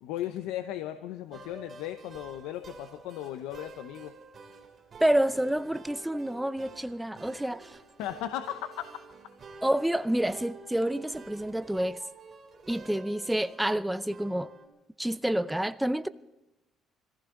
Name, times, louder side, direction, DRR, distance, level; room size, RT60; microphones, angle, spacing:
voice 1, 0.0-4.1 8.0-8.7, left 12 dB, 90° left, 0.8 m, -36 dB
sound 1, 1.3-14.7, right 4 dB, 40° right, 2.9 m, -49 dB
voice 2, 5.0-7.7 9.6-12.0 12.7-14.5 15.0-16.1, right 1 dB, 5° right, 0.6 m, -28 dB
25.0 x 15.0 x 3.8 m
cardioid pair, 95°, 0 cm